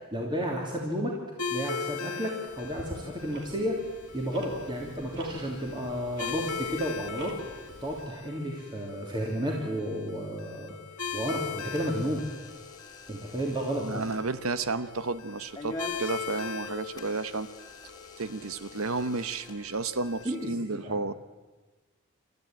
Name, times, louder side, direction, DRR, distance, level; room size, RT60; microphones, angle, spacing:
voice 1, 0.1-1.2 1.5-3.8 4.1-7.3 7.8-10.8 11.1-12.2 13.1-14.0 20.2-21.0, equal, 20° right, -2 dB, 3.0 m, -32 dB
sound 1, 1.4-20.5, left 6 dB, 90° left, 1.7 m, -40 dB
Tick-tock, 2.5-8.0, right 1 dB, 55° right, 2.7 m, -46 dB
Door / Alarm, 11.0-20.2, left 2 dB, 20° left, 2.2 m, -47 dB
voice 2, 13.8-17.5 18.2-21.1, right 3 dB, 70° right, 13 dB, 1.0 m, -32 dB
29.0 x 13.5 x 9.0 m, 1.3 s
head